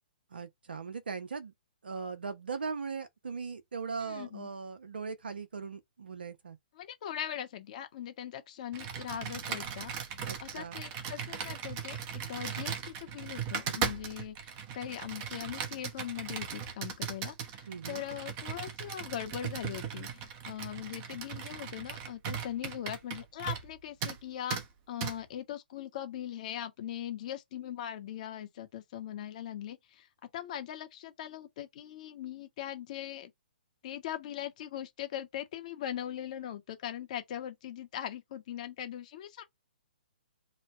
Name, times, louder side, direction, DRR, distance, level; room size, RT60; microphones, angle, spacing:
voice 1, 0.3-1.5 1.8-6.6 10.2-10.8 17.7-18.0, right 5 dB, 75° right, 0.9 m, -39 dB
voice 2, 4.0-4.5 6.8-24.6 24.9-30.1 30.3-33.3 33.8-39.4, left 11 dB, 45° left, 1.0 m, -40 dB
Computer keyboard, 8.7-23.7 24.0-24.2 24.5-24.6 25.0-25.1, right 7 dB, 30° right, 0.8 m, -38 dB
3.1 x 2.2 x 4.1 m
hypercardioid pair, 135°, 5 cm